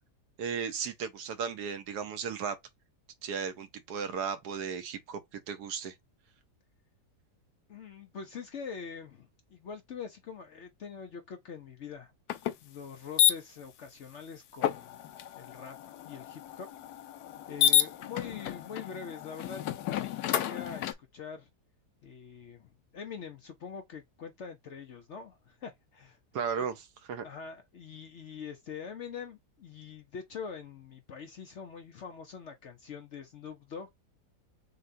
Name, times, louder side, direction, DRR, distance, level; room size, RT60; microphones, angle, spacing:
voice 1, 0.4-2.6 3.2-5.9 26.3-27.3, right 6 dB, 75° right, 1.3 m, -35 dB
voice 2, 7.7-12.1 12.6-15.0 15.3-16.7 17.5-19.6 19.9-21.5 22.0-26.2 26.6-26.7 27.2-33.9, left 6 dB, 60° left, 0.8 m, -44 dB
sound 1, 12.3-12.5 13.2-13.3 14.6-20.9, left 11 dB, 75° left, 1.1 m, -30 dB
6.6 x 2.2 x 2.6 m
omnidirectional pair, 1.8 m